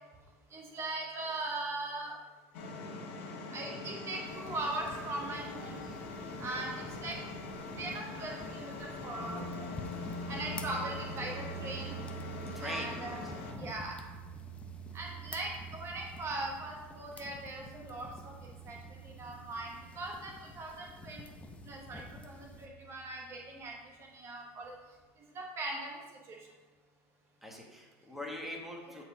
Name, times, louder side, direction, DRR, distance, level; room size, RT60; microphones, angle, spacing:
voice 1, 0.5-2.2 3.5-5.8 6.4-7.2 7.8-9.7 10.3-11.9 12.6-13.2 13.6-14.0 14.9-18.3 18.6-18.8 19.0-21.2 21.6-24.7 25.3-26.0 26.3-26.4 28.9-29.0, right 2 dB, 40° right, -1 dB, 1.2 m, -40 dB
sound 1, 2.5-13.5, left 3 dB, 70° left, 1.2 m, -43 dB
sound 2, 4.2-22.7, left 3 dB, 15° left, 0.6 m, -51 dB
sound 3, 9.2-23.2, right 3 dB, 70° right, 1.7 m, -47 dB
voice 2, 12.5-13.3 27.4-29.0, left 1 dB, 5° right, -1 dB, 1.4 m, -43 dB
8.5 x 4.4 x 3.6 m, 1.2 s
supercardioid pair, 100°, 7 cm